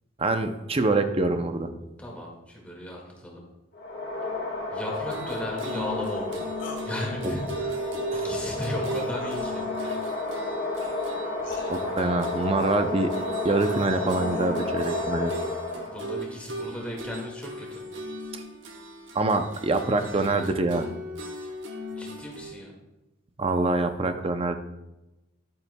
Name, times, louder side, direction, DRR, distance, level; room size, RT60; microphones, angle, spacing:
voice 1, 0.2-1.7 7.2-7.4 8.1-8.2 11.7-13.1 13.4-15.3 19.1-20.9 23.4-24.5, right 2 dB, 30° right, 8 dB, 0.5 m, -25 dB
voice 2, 2.0-3.4 4.7-6.4 6.8-10.1 15.8-17.9 21.9-22.7, left 1 dB, 5° left, -2 dB, 1.9 m, -36 dB
sound 1, 3.7-16.2, left 3 dB, 55° left, 1.5 m, -32 dB
sound 2, 4.9-22.5, right 1 dB, 65° right, 1.0 m, -37 dB
sound 3, 6.6-6.9 9.2-9.5 10.8-10.9 11.4-11.7 13.7-14.6, left 2 dB, 70° left, 1.7 m, -40 dB
11.0 x 8.7 x 2.2 m, 1.0 s
head